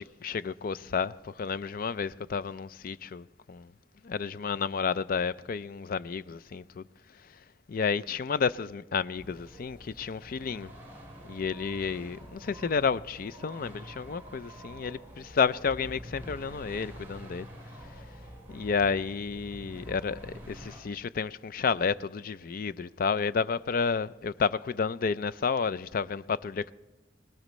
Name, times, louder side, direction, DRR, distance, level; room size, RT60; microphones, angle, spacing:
voice 1, 0.0-3.7 4.0-6.9 7.7-10.7 11.3-17.5 18.5-26.7, left 5 dB, 50° left, 0.4 m, -31 dB
sound 1, 9.2-20.8, equal, 10° right, 4.5 m, -47 dB
20.0 x 19.5 x 3.1 m
head